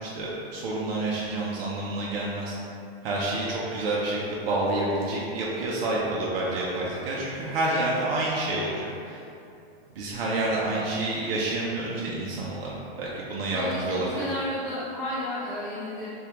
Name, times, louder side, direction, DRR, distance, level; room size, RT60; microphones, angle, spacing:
voice 1, 0.0-2.5 3.0-9.2 10.0-12.7 13.0-14.2, right 2 dB, 65° right, -5 dB, 0.6 m, -28 dB
voice 2, 13.5-16.1, left 1 dB, 10° left, -14 dB, 0.6 m, -33 dB
3.5 x 2.3 x 2.8 m, 2.7 s
supercardioid pair, 160°, 32 cm